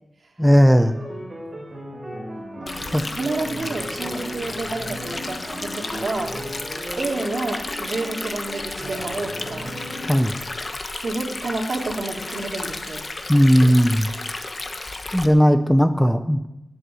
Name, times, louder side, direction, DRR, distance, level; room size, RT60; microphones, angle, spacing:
voice 1, 0.4-1.0 2.9-3.0 10.1-10.4 13.3-14.1 15.1-16.4, equal, 5° left, 9 dB, 0.6 m, -16 dB
sound 1, 0.8-7.5 8.8-10.2, equal, 30° right, 3.5 m, -35 dB
voice 2, 2.5-6.5 7.0-9.7 11.0-13.1, right 3 dB, 60° right, 1 dB, 2.4 m, -30 dB
Stream, 2.7-15.3, left 2 dB, 35° left, 1.1 m, -33 dB
Wind instrument woodwind instrument, 5.6-10.3, left 1 dB, 90° left, 4.4 m, -44 dB
19.5 x 8.1 x 6.2 m, 0.92 s
wide cardioid pair, 125°, 0 cm